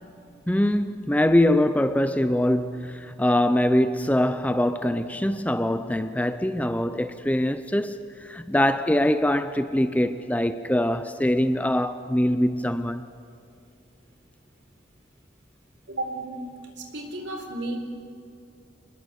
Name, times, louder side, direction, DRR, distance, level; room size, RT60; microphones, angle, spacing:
voice 1, 0.5-13.0, left 1 dB, 10° left, 0.5 m, -23 dB
voice 2, 15.9-17.8, right 2 dB, 65° right, 4.0 m, -33 dB
27.0 x 20.5 x 8.1 m
head